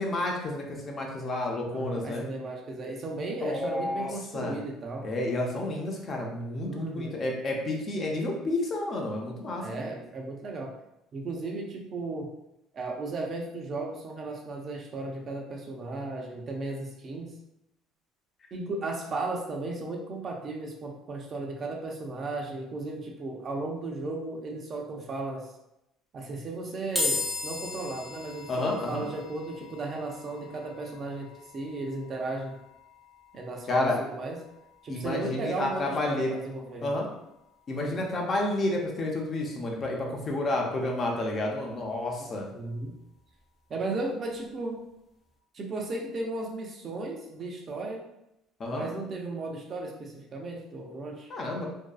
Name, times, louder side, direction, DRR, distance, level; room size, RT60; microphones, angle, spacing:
voice 1, 0.0-2.3 3.4-4.6 5.0-9.8 28.5-29.1 33.7-34.0 34.9-36.3 36.8-37.1 37.7-42.5 48.6-48.9 51.3-51.7, left 2 dB, 40° left, 0 dB, 0.6 m, -30 dB
voice 2, 1.6-5.1 6.6-7.2 9.6-10.7 11.1-12.3 12.7-17.3 18.5-25.5 26.1-32.6 33.3-34.4 34.8-36.9 37.7-38.1 42.2-42.9 43.7-44.9 45.5-48.0 48.7-51.3, right 2 dB, 45° right, 0 dB, 0.6 m, -35 dB
sound 1, 27.0-40.3, left 2 dB, 5° right, 0.8 m, -40 dB
2.6 x 2.2 x 2.3 m, 0.84 s
supercardioid pair, 95°, 0 cm